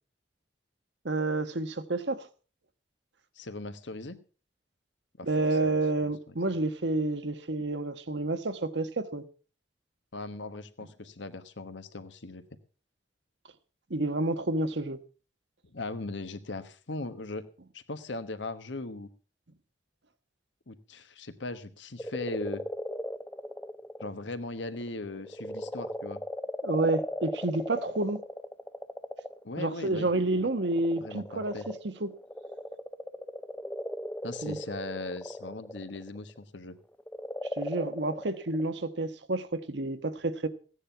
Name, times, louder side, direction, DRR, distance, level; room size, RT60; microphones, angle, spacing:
voice 1, 1.0-2.3 5.2-9.2 13.9-15.0 26.6-28.2 29.6-32.1 34.4-34.6 37.6-40.5, right 2 dB, 75° right, 1.2 m, -29 dB
voice 2, 3.4-4.2 5.2-6.3 10.1-12.4 15.7-17.5 17.7-19.1 20.7-22.6 24.0-26.2 29.4-30.5 31.0-31.7 34.2-36.8, left 2 dB, 80° left, 1.3 m, -39 dB
sound 1, 22.0-24.1 24.6-29.5 30.3-36.4 37.0-38.6, left 1 dB, 10° left, 0.6 m, -38 dB
16.0 x 9.9 x 5.6 m
head